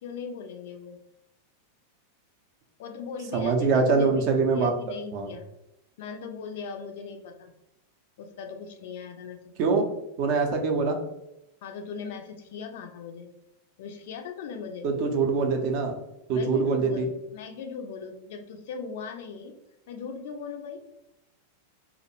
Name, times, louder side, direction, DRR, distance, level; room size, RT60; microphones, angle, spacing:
voice 1, 0.0-1.0 2.8-5.4 6.0-7.5 8.2-9.4 11.6-13.3 13.8-14.9 16.3-19.5 19.9-20.8, left 5 dB, 55° left, 5 dB, 0.3 m, -39 dB
voice 2, 3.3-5.3 9.6-9.9 10.2-11.0 14.8-15.9 16.3-17.1, right 4 dB, 45° right, 3 dB, 0.4 m, -24 dB
2.4 x 2.1 x 2.9 m, 0.87 s
figure-of-eight pair, 90°, 0 cm